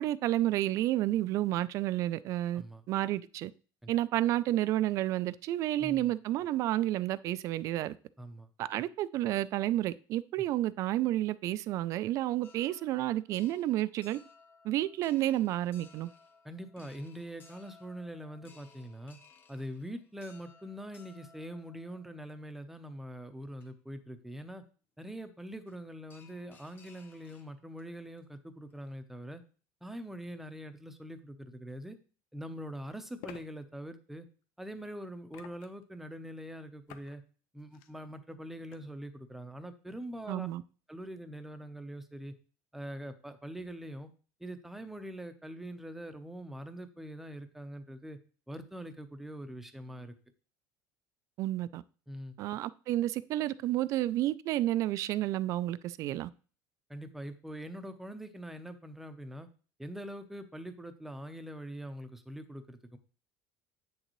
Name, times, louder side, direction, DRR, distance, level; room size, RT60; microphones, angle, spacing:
voice 1, 0.0-2.6 2.9-3.5 3.9-8.0 8.6-14.2 14.6-16.1 40.3-40.6 51.4-51.8 52.4-56.3, right 14 dB, 45° right, 17 dB, 0.4 m, -30 dB
voice 2, 5.8-6.1 8.2-8.5 16.4-19.2 19.5-24.6 25.0-29.4 29.8-32.0 32.3-34.3 34.6-37.2 37.5-40.5 40.9-42.3 42.7-44.1 44.4-48.2 48.5-50.1 52.1-52.3 56.9-59.5 59.8-63.0, equal, 5° right, 9 dB, 0.7 m, -43 dB
sound 1, 12.4-22.5 23.2-23.3 23.6-23.7 25.7-25.8 26.1-27.8 28.2-28.3 28.6-28.9, left 4 dB, 25° left, 1.2 m, -60 dB
sound 2, 31.7-31.8 33.2-33.5 35.3-35.8 36.9-37.2 37.6-37.9 38.7-38.8, left 10 dB, 75° left, 0.9 m, -49 dB
8.7 x 6.5 x 3.1 m, 0.37 s
cardioid pair, 160°, 7 cm